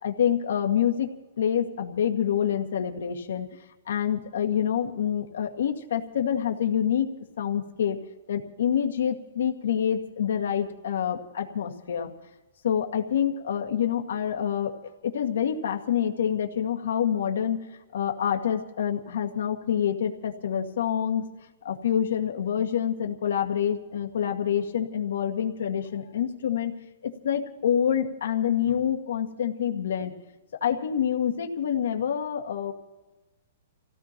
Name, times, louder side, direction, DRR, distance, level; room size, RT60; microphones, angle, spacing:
voice 1, 0.0-1.1 1.4-3.6 3.9-7.1 7.4-8.0 8.3-12.1 12.6-14.8 15.0-17.6 17.9-21.3 21.6-26.7 27.0-30.1 30.6-32.7, left 9 dB, 70° left, 3 dB, 2.0 m, -27 dB
28.0 x 17.0 x 3.0 m, 1.1 s
hypercardioid pair, 175°, 0 cm